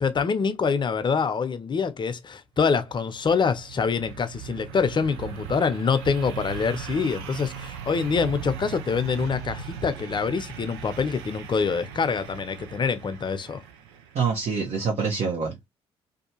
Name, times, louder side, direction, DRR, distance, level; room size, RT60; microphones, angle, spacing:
voice 1, 0.0-13.6, left 5 dB, 35° left, 0.6 m, -25 dB
sound 1, 2.8-14.4, right 8 dB, 85° right, 0.4 m, -39 dB
voice 2, 14.1-15.7, right 5 dB, 55° right, 0.9 m, -26 dB
2.6 x 2.3 x 2.8 m
hypercardioid pair, 50°, 13 cm